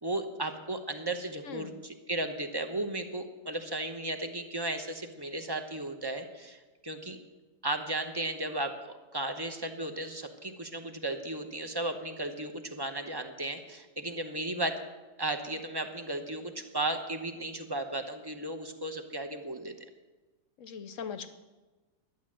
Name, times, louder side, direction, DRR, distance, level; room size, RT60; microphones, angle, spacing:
voice 1, 0.0-7.2 7.6-14.8 15.2-19.7, right 2 dB, 20° right, 6 dB, 0.7 m, -35 dB
voice 2, 20.6-21.3, left 6 dB, 60° left, 11 dB, 0.9 m, -40 dB
11.5 x 10.0 x 7.5 m, 1.2 s
omnidirectional pair, 1.7 m